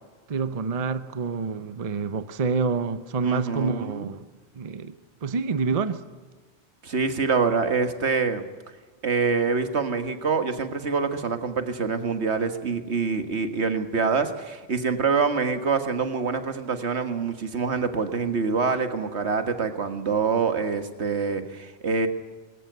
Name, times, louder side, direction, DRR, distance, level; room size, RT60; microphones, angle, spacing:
voice 1, 0.3-4.2 4.6-5.0 5.2-6.0, right 5 dB, 40° right, 0.8 m, -27 dB
voice 2, 3.2-4.1 6.8-8.4 9.0-22.1, right 5 dB, 75° right, 1.8 m, -25 dB
20.5 x 17.0 x 8.1 m
omnidirectional pair, 1.1 m